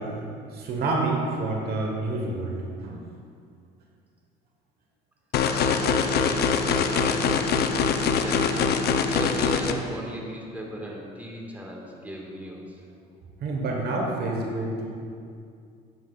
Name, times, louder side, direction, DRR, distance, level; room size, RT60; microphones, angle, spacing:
voice 1, 0.0-2.6 2.8-3.0 13.4-14.9, right 2 dB, 55° right, 0 dB, 1.2 m, -28 dB
sound 1, 5.3-9.7, left 6 dB, 55° left, 0.7 m, -23 dB
voice 2, 5.9-12.8 14.6-14.7, equal, 10° right, -2 dB, 1.7 m, -37 dB
10.0 x 9.2 x 2.4 m, 2.3 s
supercardioid pair, 90°, 19 cm